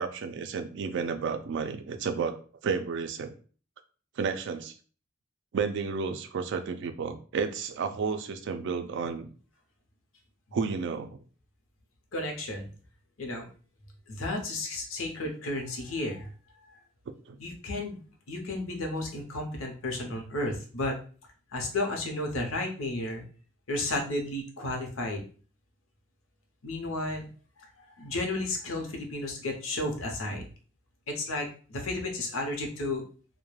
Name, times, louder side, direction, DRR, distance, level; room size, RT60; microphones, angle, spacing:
voice 1, 0.0-3.3 4.2-4.7 5.5-9.3 10.5-11.2 17.3-17.4, right 5 dB, 60° right, 8 dB, 0.3 m, -32 dB
voice 2, 12.1-12.7 13.2-13.4 14.1-16.3 16.6-16.8 17.4-18.0 18.3-21.0 21.5-23.2 23.7-25.2 26.6-27.3 27.8-30.4 31.1-33.0, left 2 dB, 85° left, 2 dB, 0.7 m, -33 dB
2.3 x 2.1 x 3.0 m, 0.40 s
head